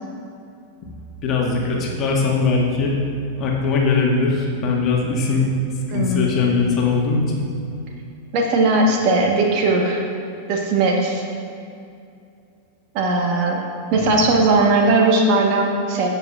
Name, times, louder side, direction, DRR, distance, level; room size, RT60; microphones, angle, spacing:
voice 1, 1.2-3.0 3.4-5.5 5.9-7.5 13.9-14.2, left 4 dB, 35° left, -1 dB, 1.5 m, -20 dB
voice 2, 8.3-10.0 10.5-11.2 12.9-13.6 13.9-16.1, right 2 dB, 45° right, 1 dB, 1.2 m, -18 dB
16.0 x 6.8 x 2.4 m, 2.4 s
figure-of-eight pair, 90°, 0 cm